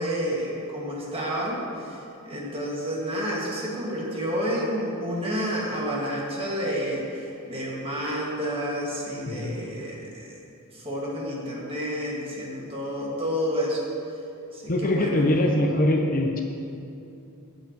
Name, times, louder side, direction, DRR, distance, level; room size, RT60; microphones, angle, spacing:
voice 1, 0.0-2.0 2.2-10.3 10.7-13.8 14.5-15.2, equal, 25° right, -4 dB, 1.8 m, -30 dB
voice 2, 14.7-16.4, left 1 dB, 40° left, 2 dB, 0.7 m, -23 dB
15.0 x 7.7 x 2.9 m, 2.8 s
head